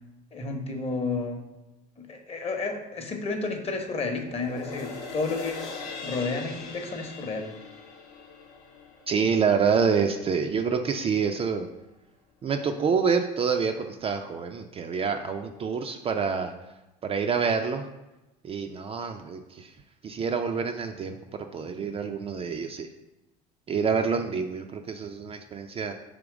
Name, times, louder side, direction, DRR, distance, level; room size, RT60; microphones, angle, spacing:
voice 1, 0.3-1.4 2.0-5.6 6.0-7.5, left 3 dB, 30° left, 4 dB, 0.8 m, -31 dB
sound 1, 4.2-10.7 11.2-11.3, left 4 dB, 80° left, 0.8 m, -41 dB
voice 2, 9.1-11.7 12.4-16.5 17.0-17.9 18.4-19.7 20.0-22.9 23.7-25.9, right 6 dB, 30° right, 5 dB, 0.3 m, -27 dB
3.6 x 3.0 x 4.8 m, 1.0 s
hypercardioid pair, 75°, 20 cm